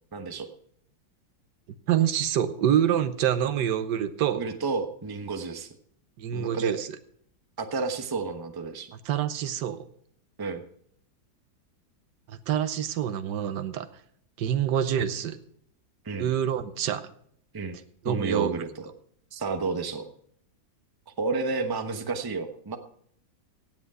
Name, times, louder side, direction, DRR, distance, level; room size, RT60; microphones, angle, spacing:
voice 1, 0.1-0.5 4.4-5.7 6.3-6.8 7.6-8.9 10.4-10.6 16.0-16.3 17.5-17.8 18.0-18.9 19.3-20.1 21.2-22.8, right 4 dB, 20° right, 7 dB, 0.6 m, -31 dB
voice 2, 1.9-4.4 6.2-6.9 9.0-9.8 12.3-13.9 14.4-15.4 16.2-17.1 18.0-18.5, right 10 dB, 70° right, 11 dB, 1.4 m, -26 dB
16.5 x 8.1 x 4.8 m, 0.65 s
omnidirectional pair, 2.0 m